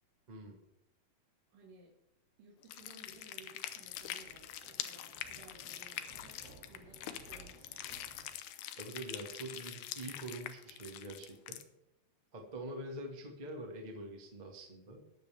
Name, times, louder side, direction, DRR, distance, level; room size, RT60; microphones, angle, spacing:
voice 1, 0.3-0.6 8.8-11.6 12.3-15.1, right 1 dB, 35° right, 1 dB, 0.7 m, -45 dB
voice 2, 1.5-2.0 2.4-8.0, right 3 dB, 65° right, -5 dB, 3.6 m, -59 dB
sound 1, 2.6-11.6, left 12 dB, 85° left, 2.7 m, -44 dB
Thunder, 2.8-8.3, right 3 dB, 85° right, 4.3 m, -59 dB
20.0 x 7.3 x 3.5 m, 0.86 s
omnidirectional pair, 4.3 m